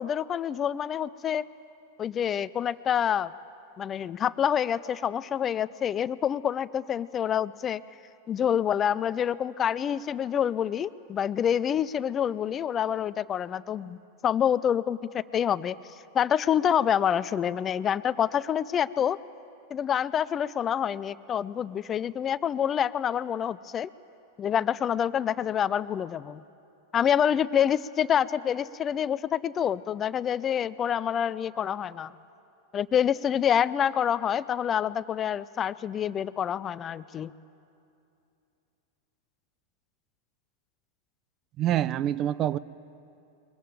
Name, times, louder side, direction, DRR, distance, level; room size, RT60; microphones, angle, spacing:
voice 1, 0.0-1.4 2.0-3.3 3.8-7.8 8.3-15.8 16.1-19.2 19.7-23.9 24.4-26.4 26.9-32.1 32.7-37.3, left 9 dB, 25° left, 17 dB, 0.5 m, -27 dB
voice 2, 41.6-42.6, right 12 dB, 35° right, 20 dB, 0.5 m, -26 dB
22.5 x 21.5 x 9.0 m, 2.7 s
figure-of-eight pair, 90°, 0 cm